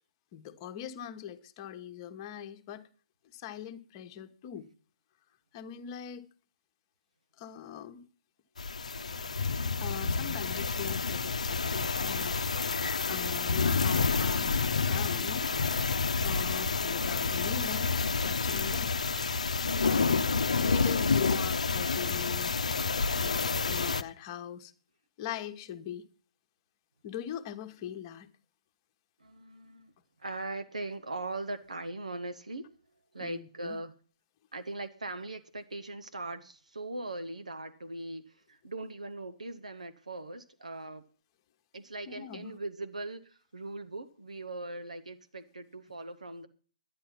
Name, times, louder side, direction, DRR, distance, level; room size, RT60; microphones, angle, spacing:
voice 1, 0.3-2.9 3.3-4.7 5.5-6.3 7.4-8.0 9.8-12.5 12.8-15.5 16.2-17.9 18.2-18.9 19.8-22.5 23.1-24.7 25.2-26.1 27.0-28.3 33.2-33.8 42.1-42.6, left 9 dB, 35° left, 1.2 m, -41 dB
sound 1, 8.6-24.0, left 4 dB, 70° left, 0.7 m, -29 dB
voice 2, 29.2-29.9 30.2-32.7 33.1-33.9 34.5-41.0 41.7-46.5, right 2 dB, 80° right, 1.0 m, -40 dB
11.0 x 9.9 x 5.8 m
figure-of-eight pair, 130°, 4 cm